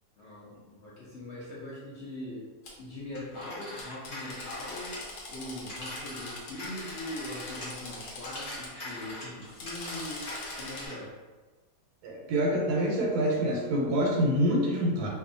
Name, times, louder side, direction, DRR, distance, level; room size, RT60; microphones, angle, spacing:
voice 1, 0.2-2.5 2.8-5.0 5.3-10.3 10.5-11.1, left 1 dB, 65° left, -7 dB, 0.7 m, -41 dB
Drill, 2.6-2.7 3.8-8.7 9.4-10.9, left 2 dB, 85° left, 1.2 m, -43 dB
Telephone, 3.1-7.9 8.2-11.1, left 1 dB, 45° left, 1.0 m, -42 dB
voice 2, 12.0-15.1, equal, 80° right, -2 dB, 1.1 m, -26 dB
2.6 x 2.2 x 2.5 m, 1.3 s
omnidirectional pair, 1.7 m